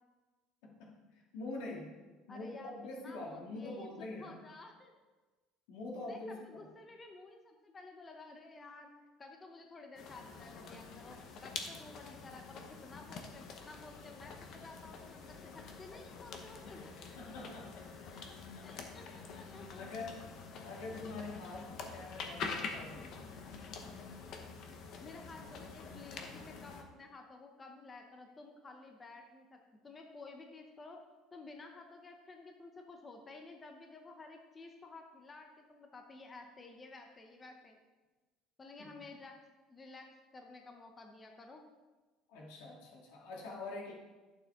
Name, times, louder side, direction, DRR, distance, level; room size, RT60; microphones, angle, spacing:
voice 1, 0.6-4.4 5.7-6.7 16.7-16.8 17.2-17.9 18.2-18.7 19.7-20.2 20.6-23.3 38.8-39.0 42.3-43.9, left 2 dB, 85° left, -1 dB, 2.3 m, -45 dB
voice 2, 2.3-5.0 6.0-8.9 9.2-17.2 18.6-19.8 25.0-31.0 31.3-37.8 38.6-39.4 39.7-40.1 40.3-41.7, left 3 dB, 15° left, 3 dB, 0.7 m, -53 dB
sound 1, 10.0-26.8, left 5 dB, 40° left, 1.0 m, -46 dB
11.5 x 6.9 x 3.7 m, 1.2 s
cardioid pair, 170°, 0 cm